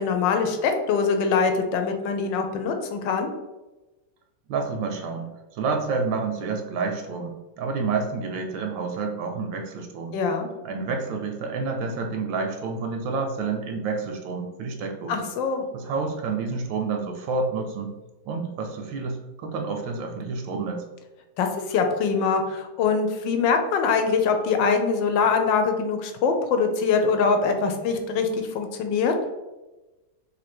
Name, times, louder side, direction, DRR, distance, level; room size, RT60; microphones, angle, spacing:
voice 1, 0.0-3.3 10.1-10.5 15.1-15.6 21.4-29.1, left 5 dB, 75° left, 5 dB, 1.2 m, -23 dB
voice 2, 4.5-10.1 10.6-15.3 15.7-17.9 18.3-20.8, right 4 dB, 80° right, 3 dB, 1.3 m, -29 dB
3.2 x 2.7 x 4.2 m, 1.1 s
omnidirectional pair, 2.1 m